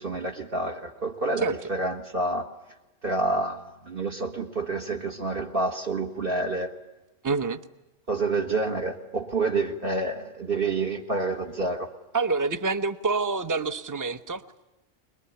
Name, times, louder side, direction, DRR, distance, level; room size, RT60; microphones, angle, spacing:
voice 1, 0.0-2.5 3.0-6.7 8.1-11.9, right 2 dB, 50° right, 5 dB, 1.9 m, -28 dB
voice 2, 7.2-7.6 12.1-14.4, right 4 dB, 20° right, 11 dB, 0.8 m, -27 dB
22.5 x 22.0 x 10.0 m, 0.98 s
omnidirectional pair, 1.2 m